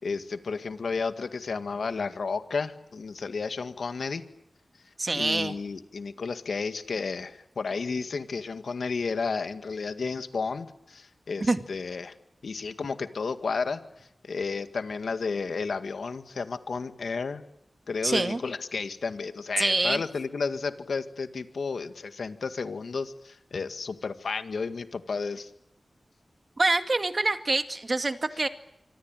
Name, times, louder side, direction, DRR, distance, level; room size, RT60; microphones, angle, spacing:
voice 1, 0.0-4.2 5.1-12.1 12.4-17.4 17.9-25.5, left 4 dB, 85° left, 9 dB, 1.9 m, -32 dB
voice 2, 5.0-5.6 11.5-11.6 18.0-18.4 19.6-20.0 26.6-28.5, right 2 dB, 45° right, 8 dB, 2.2 m, -25 dB
26.0 x 24.0 x 9.2 m, 0.77 s
wide cardioid pair, 70°, 0 cm